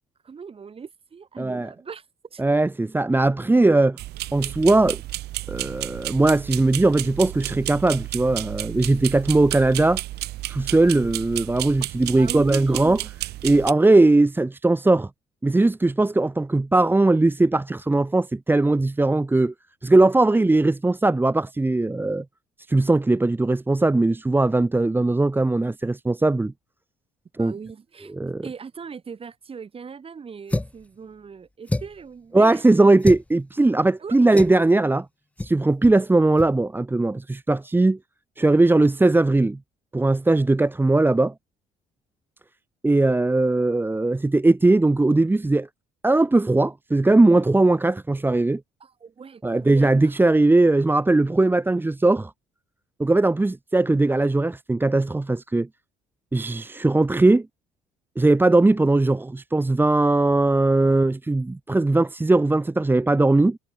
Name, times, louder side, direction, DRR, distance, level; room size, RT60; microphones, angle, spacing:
voice 1, 0.2-2.0 2.3-2.4 11.8-13.1 27.4-28.1 28.4-32.6 34.0-34.4 48.8-50.1, right 6 dB, 35° right, 6.9 m, -39 dB
voice 2, 1.4-1.7 2.4-4.0 4.3-5.0 5.5-10.0 10.5-13.0 13.4-15.1 15.4-19.5 19.8-22.2 22.7-26.5 27.4-27.5 28.1-28.4 32.3-35.1 35.4-38.0 38.4-39.6 39.9-41.3 42.8-45.7 46.0-48.6 49.4-52.3 53.0-55.7 56.3-57.5 58.2-63.6, right 2 dB, 10° right, 1.4 m, -19 dB
sound 1, 4.0-13.7, right 16 dB, 75° right, 2.6 m, -32 dB
sound 2, 30.5-30.9 31.7-32.1 33.0-33.3 34.4-34.6 35.4-35.6 35.8-36.0 36.3-36.5, left 2 dB, 10° left, 0.8 m, -28 dB
cardioid pair, 110°, 17 cm